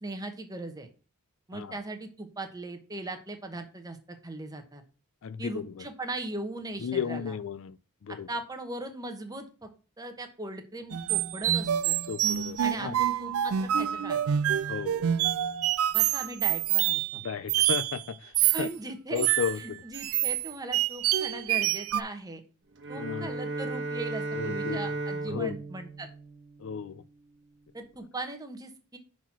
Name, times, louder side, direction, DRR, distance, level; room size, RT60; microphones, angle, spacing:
voice 1, 0.0-0.9 1.5-4.8 5.4-7.3 8.1-9.7 10.0-12.0 12.6-14.2 15.9-17.2 18.5-19.3 19.6-22.4 22.9-26.1 27.7-29.0, right 2 dB, 15° right, 1.0 m, -39 dB
voice 2, 5.2-5.8 6.8-7.8 8.0-8.3 12.1-12.9 14.7-15.1 17.2-18.3 18.6-18.7 19.1-19.8 23.0-23.3 24.3-24.8 25.3-25.5 26.6-27.0, left 7 dB, 60° left, 0.4 m, -34 dB
sound 1, 10.9-18.0 18.3-18.7 19.2-22.0, right 11 dB, 70° right, 0.4 m, -27 dB
Bowed string instrument, 22.7-27.1, right 2 dB, 55° right, 1.1 m, -35 dB
6.1 x 4.3 x 5.9 m
head